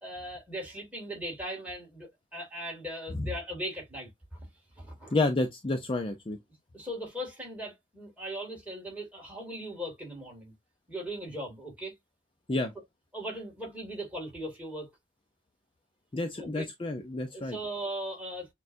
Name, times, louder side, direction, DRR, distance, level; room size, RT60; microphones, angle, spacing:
voice 1, 0.0-4.5 4.8-5.2 6.7-10.5 10.9-11.9 13.1-14.9 16.4-16.7 17.3-18.5, right 1 dB, 5° right, 2.3 m, -39 dB
voice 2, 5.1-6.4 12.5-12.7 16.1-17.6, left 2 dB, 25° left, 0.5 m, -30 dB
6.4 x 2.3 x 2.6 m
head